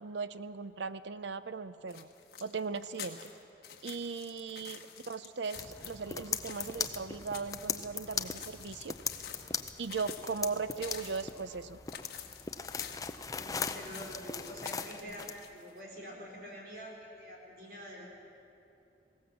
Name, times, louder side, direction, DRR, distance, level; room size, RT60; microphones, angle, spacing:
voice 1, 0.0-2.1 2.4-3.3 3.8-8.9 9.8-11.8, right 4 dB, 80° right, 13 dB, 0.7 m, -38 dB
sound 1, 1.9-15.8, left 8 dB, 55° left, 1.5 m, -49 dB
sound 2, 5.6-15.4, left 5 dB, 20° left, 0.5 m, -39 dB
voice 2, 13.3-18.1, equal, 55° right, -1 dB, 4.4 m, -47 dB
21.0 x 17.5 x 7.3 m, 2.8 s
head